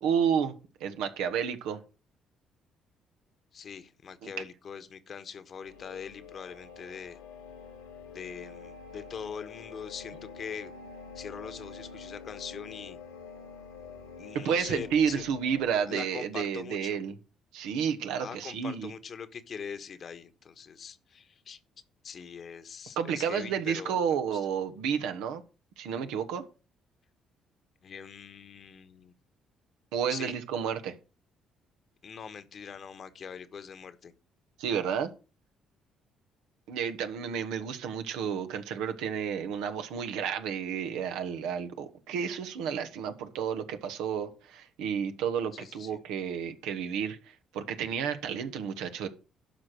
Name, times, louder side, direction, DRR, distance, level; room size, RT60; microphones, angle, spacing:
voice 1, 0.0-0.5 0.8-1.8 4.2-4.3 14.4-17.1 17.5-18.9 23.0-25.4 25.8-26.4 29.9-30.9 34.6-35.1 36.7-49.1, right 7 dB, 75° right, 1.2 m, -31 dB
voice 2, 3.5-7.2 8.1-10.7 11.1-13.0 14.2-15.2 15.9-17.0 18.2-21.6 22.0-24.4 27.8-29.1 30.1-30.3 32.0-34.1 45.5-46.0, left 6 dB, 50° left, 1.3 m, -42 dB
sound 1, 5.6-15.8, left 5 dB, 90° left, 2.5 m, -47 dB
12.0 x 5.2 x 6.4 m
hypercardioid pair, 55°, 0 cm